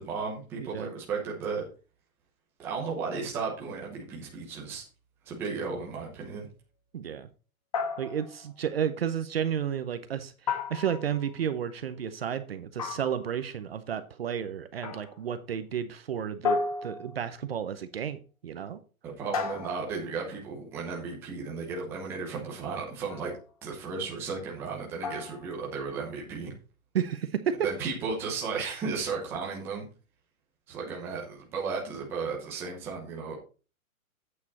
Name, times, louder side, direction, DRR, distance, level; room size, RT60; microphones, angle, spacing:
voice 1, 0.0-1.6 2.6-4.8 5.3-6.5 19.0-23.3 23.6-26.5 27.6-29.8 30.7-33.4, right 5 dB, 5° right, -3 dB, 0.8 m, -34 dB
voice 2, 0.6-0.9 6.9-7.3 8.0-10.3 10.7-18.8 26.9-27.6, right 8 dB, 45° right, 11 dB, 0.8 m, -32 dB
sound 1, 7.7-8.5 10.5-11.3 12.8-13.4 14.8-15.2 16.4-17.4 19.3-20.1 23.1-23.4 25.0-25.5, left 4 dB, 25° left, 0.8 m, -33 dB
8.6 x 7.2 x 4.1 m, 0.35 s
hypercardioid pair, 180°, 43 cm